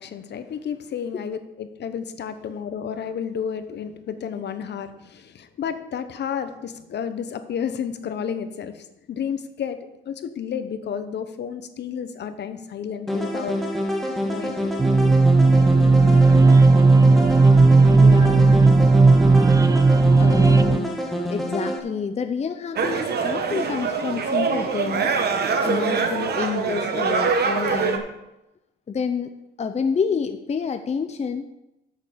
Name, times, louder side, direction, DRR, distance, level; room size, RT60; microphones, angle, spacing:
voice 1, 0.0-13.6 14.2-14.7, left 7 dB, 60° left, 1.0 m, -31 dB
sound 1, 13.1-21.8, equal, ahead, 1.7 m, -27 dB
sound 2, 14.8-20.8, right 3 dB, 15° right, 0.4 m, -14 dB
voice 2, 17.9-18.9 20.2-21.0 21.3-25.2 25.6-28.1 28.9-31.5, left 6 dB, 35° left, 0.7 m, -28 dB
sound 3, 22.8-28.0, right 5 dB, 55° right, 1.3 m, -24 dB
8.4 x 6.6 x 6.8 m
cardioid pair, 90°, 20 cm